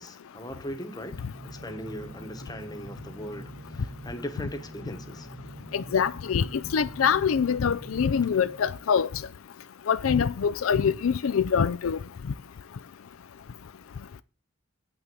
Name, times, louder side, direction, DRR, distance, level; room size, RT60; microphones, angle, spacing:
voice 1, 0.0-5.3, equal, 20° left, 1.2 m, -39 dB
sound 1, 0.9-9.2, right 1 dB, 85° right, 3.1 m, -45 dB
voice 2, 5.7-9.1 9.9-12.0, left 7 dB, 85° left, 0.4 m, -24 dB
8.3 x 6.1 x 7.8 m
head